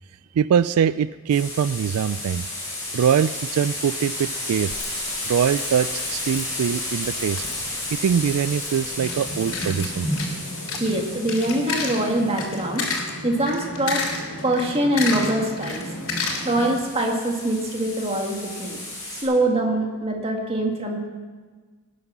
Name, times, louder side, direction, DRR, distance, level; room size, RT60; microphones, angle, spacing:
voice 1, 0.4-2.4 2.9-4.7 5.2-7.4 7.9-10.1, right 8 dB, 85° right, 16 dB, 0.3 m, -23 dB
sound 1, 1.3-12.8 15.7-19.2, left 2 dB, 15° left, 5.3 m, -33 dB
Crackle, 4.7-10.1, left 4 dB, 65° left, 3.4 m, -44 dB
sound 2, 8.9-16.8, left 2 dB, 80° left, 3.4 m, -30 dB
voice 2, 10.8-12.8 13.2-14.0 14.4-15.8 16.4-18.8 19.2-21.0, right 1 dB, 25° right, 1 dB, 2.0 m, -23 dB
18.0 x 9.7 x 6.1 m, 1.4 s
head